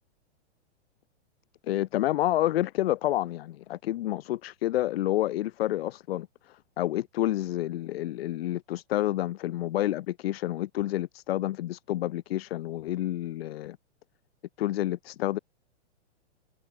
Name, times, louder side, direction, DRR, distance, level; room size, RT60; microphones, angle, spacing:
voice 1, 1.6-13.8 14.6-15.4, left 14 dB, 60° left, 4.2 m, -29 dB
hypercardioid pair, 145°, 35 cm